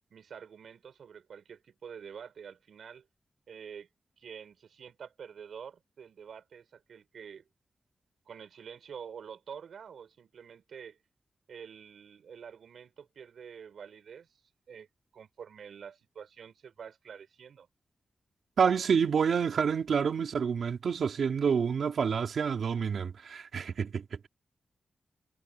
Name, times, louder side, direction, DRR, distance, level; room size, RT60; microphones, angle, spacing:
voice 1, 0.1-3.1 3.5-3.9 4.2-7.4 8.3-11.0 11.5-14.3 14.7-14.9 15.1-17.7, right 7 dB, 90° right, 6.5 m, -47 dB
voice 2, 18.6-24.3, right 6 dB, 70° right, 3.3 m, -28 dB
wide cardioid pair, 170°, 0 cm